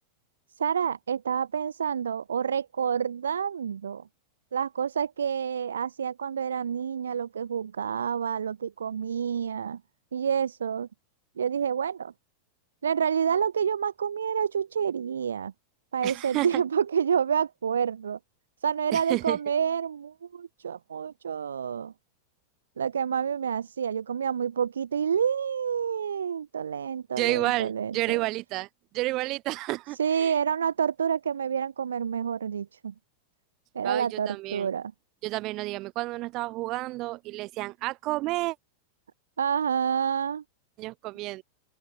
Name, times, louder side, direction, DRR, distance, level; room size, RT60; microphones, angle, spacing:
voice 1, 0.6-4.1 4.5-9.8 10.1-10.9 11.4-12.1 12.8-15.5 15.9-18.2 18.6-21.9 22.8-28.2 30.0-32.9 33.7-34.9 39.4-40.4, right 7 dB, 70° right, 0.5 m, -28 dB
voice 2, 16.0-16.6 18.9-19.4 27.2-28.7 28.9-30.3 33.8-34.7 35.2-38.6 40.8-41.4, right 19 dB, 40° right, 1.8 m, -30 dB
open air
figure-of-eight pair, 90°, 0 cm